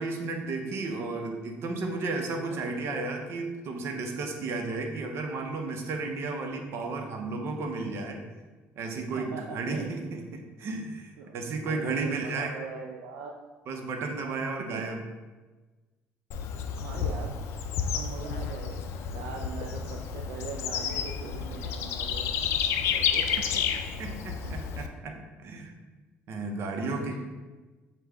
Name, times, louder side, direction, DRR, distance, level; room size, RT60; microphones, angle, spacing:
voice 1, 0.0-8.2 8.8-12.5 13.7-15.0 24.0-25.7 26.3-27.2, right 3 dB, 60° right, 3 dB, 0.7 m, -33 dB
voice 2, 2.5-2.9 9.2-10.2 11.2-13.4 14.6-14.9 16.7-17.4 17.9-18.8 19.1-22.3 22.9-23.6 24.4-24.6 26.7-27.2, right 6 dB, 85° right, 1 dB, 0.3 m, -40 dB
Bird / Insect, 16.3-24.9, left 7 dB, 70° left, 0.3 m, -31 dB
6.4 x 2.2 x 3.4 m, 1.3 s
cardioid pair, 100°, 5 cm